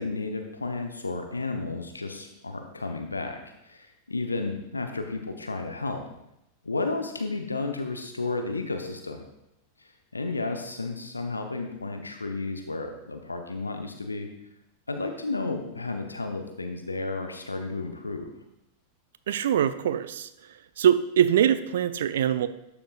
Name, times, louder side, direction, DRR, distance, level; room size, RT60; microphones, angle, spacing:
voice 1, 0.0-3.4 3.7-6.0 6.6-9.2 10.1-14.3 14.9-18.3, left 3 dB, 80° left, 5 dB, 0.7 m, -32 dB
voice 2, 19.3-20.3 20.8-22.5, right 9 dB, 60° right, 13 dB, 0.4 m, -23 dB
12.0 x 6.9 x 2.4 m, 0.85 s
figure-of-eight pair, 90°, 0 cm